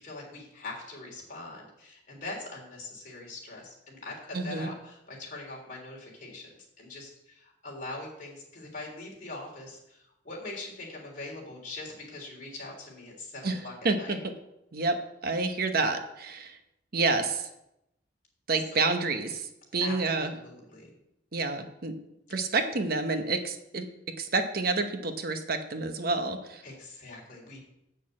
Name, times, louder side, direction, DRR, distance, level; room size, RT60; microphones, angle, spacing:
voice 1, 0.0-6.5 6.8-14.1 18.7-18.8 19.8-20.9 26.6-27.6, left 2 dB, 45° left, -2 dB, 3.3 m, -42 dB
voice 2, 4.3-4.7 13.4-13.6 13.8-14.0 14.7-15.0 15.2-16.6 16.9-17.5 18.5-20.3 21.3-22.0 22.3-23.9 24.2-26.6, right 3 dB, 55° right, 7 dB, 0.9 m, -28 dB
7.8 x 6.4 x 7.5 m, 0.85 s
head